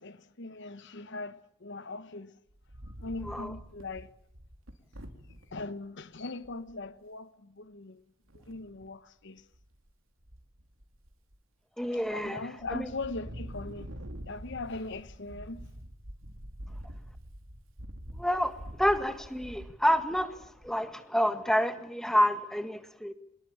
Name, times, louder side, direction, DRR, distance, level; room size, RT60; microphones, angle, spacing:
voice 1, 0.0-2.3 3.0-4.1 5.5-8.0 8.5-9.4 12.1-13.9 14.3-15.7, left 3 dB, 60° left, 1.1 m, -40 dB
Wind, 2.5-5.6 6.1-6.2 6.4-6.8 8.3-8.9 9.4-9.9 10.2-11.4 11.8-12.3 12.6-20.8, equal, 75° right, 3.2 m, -46 dB
voice 2, 11.8-12.4 12.7-12.9 18.1-23.1, equal, ahead, 1.8 m, -28 dB
25.0 x 21.0 x 8.8 m
head